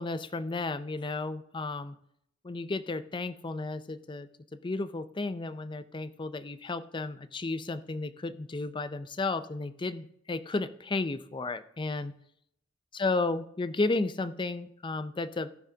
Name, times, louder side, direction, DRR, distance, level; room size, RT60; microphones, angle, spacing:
voice 1, 0.0-1.9 2.4-4.3 4.6-12.1 12.9-15.5, left 3 dB, 25° left, 12 dB, 0.5 m, -33 dB
18.0 x 6.1 x 2.8 m, 0.73 s
head